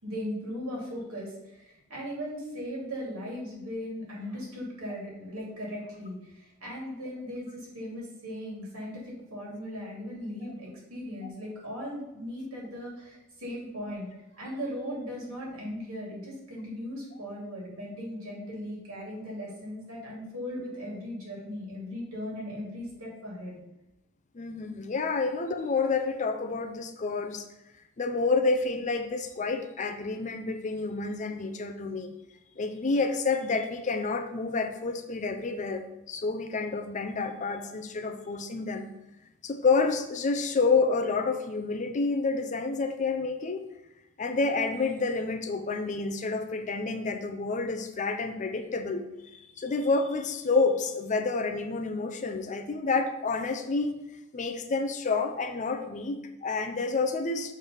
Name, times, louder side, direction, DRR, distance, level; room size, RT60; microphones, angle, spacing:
voice 1, 0.0-14.0 14.3-23.6, equal, 85° right, -3 dB, 2.5 m, -38 dB
voice 2, 24.3-27.5 28.0-32.1 32.6-38.9 39.4-43.7 44.2-53.9 54.3-57.5, left 4 dB, 35° left, 7 dB, 0.5 m, -29 dB
6.5 x 3.3 x 5.5 m, 0.91 s
head